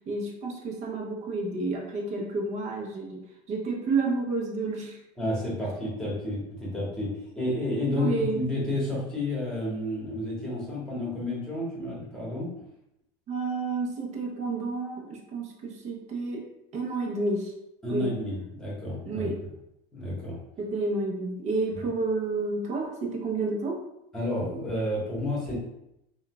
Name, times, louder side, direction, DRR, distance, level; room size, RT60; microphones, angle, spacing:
voice 1, 0.1-3.2 3.5-5.0 7.9-8.4 13.3-16.4 16.7-17.5 17.9-18.1 19.0-19.4 20.6-23.8, right 3 dB, 45° right, 0 dB, 0.8 m, -30 dB
voice 2, 5.2-12.5 17.8-19.3 19.9-20.4 24.1-25.6, left 1 dB, 5° left, -6 dB, 1.4 m, -31 dB
3.7 x 2.3 x 2.3 m, 0.82 s
supercardioid pair, 120°, 16 cm